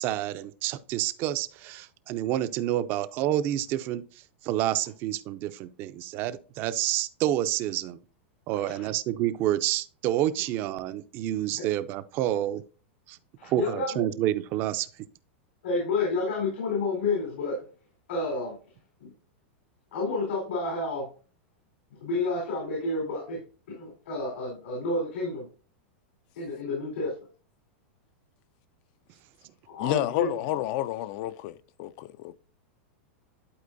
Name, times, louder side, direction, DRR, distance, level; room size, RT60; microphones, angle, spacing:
voice 1, 0.0-4.0 4.4-8.0 8.5-12.6 13.1-13.2 13.4-14.9, right 13 dB, 35° right, 0.5 m, -28 dB
voice 2, 13.4-14.1 15.6-17.6 18.1-18.6 19.0-19.1 19.9-21.1 22.0-23.4 23.8-25.5 26.4-27.1 29.7-30.3, left 3 dB, 85° left, 3.9 m, -30 dB
voice 3, 29.8-32.4, left 14 dB, 45° left, 0.4 m, -30 dB
11.5 x 4.4 x 2.6 m
supercardioid pair, 155°, 6 cm